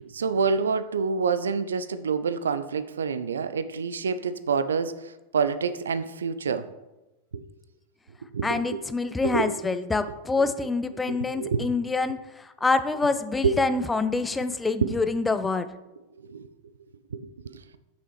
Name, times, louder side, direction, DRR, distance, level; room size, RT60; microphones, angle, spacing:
voice 1, 0.0-6.7 7.3-7.4 8.3-8.8 9.2-9.5 11.1-11.7 13.4-13.6 14.8-14.9 16.2-16.5 17.1-17.5, right 5 dB, 70° right, 12 dB, 0.3 m, -27 dB
voice 2, 8.4-15.7, left 3 dB, 10° left, 11 dB, 0.3 m, -26 dB
6.1 x 5.6 x 3.0 m, 1.0 s
figure-of-eight pair, 90°, 0 cm